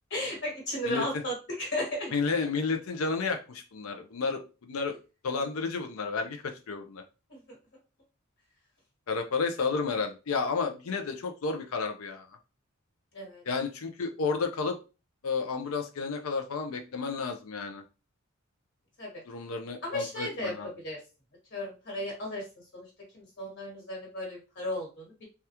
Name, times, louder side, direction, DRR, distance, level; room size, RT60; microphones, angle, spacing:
voice 1, 0.1-2.1 7.3-7.6 13.1-13.4 19.0-19.2 19.8-21.0 21.5-22.5 22.7-22.9 23.1-25.2, left 1 dB, 60° left, -1 dB, 1.2 m, -35 dB
voice 2, 2.1-4.4 4.7-4.9 5.2-7.0 9.1-12.3 13.5-14.8 15.2-17.8 19.3-20.7, left 4 dB, 90° left, 6 dB, 0.5 m, -31 dB
3.4 x 2.3 x 2.8 m, 0.31 s
head